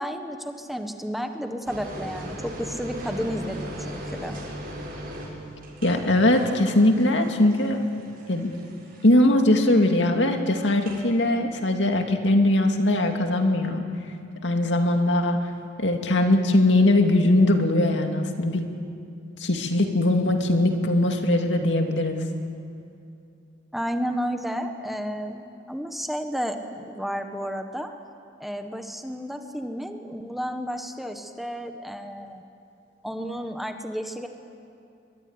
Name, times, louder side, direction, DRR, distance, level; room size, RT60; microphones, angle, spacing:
voice 1, 0.0-4.4 23.7-27.9 28.4-32.4 33.0-34.3, equal, ahead, 5 dB, 1.4 m, -32 dB
sound 1, 1.7-9.3 10.7-11.0, equal, 50° right, 6.9 m, -38 dB
voice 2, 5.8-7.8 8.3-8.5 9.0-13.8 14.4-15.4 15.8-18.6 19.4-22.2, left 1 dB, 70° left, 4 dB, 2.5 m, -21 dB
23.5 x 22.5 x 9.7 m, 2.5 s
head